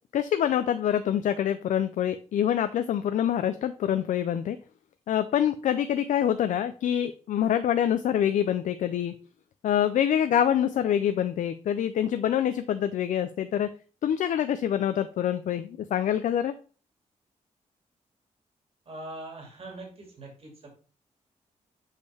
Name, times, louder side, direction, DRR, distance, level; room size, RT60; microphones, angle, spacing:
voice 1, 0.1-4.6 5.1-9.1 9.6-13.7 14.0-16.5, left 10 dB, 90° left, 10 dB, 0.4 m, -26 dB
voice 2, 18.9-20.7, right 2 dB, 50° right, 1 dB, 2.4 m, -42 dB
6.6 x 5.3 x 3.4 m, 0.37 s
wide cardioid pair, 135°, 13 cm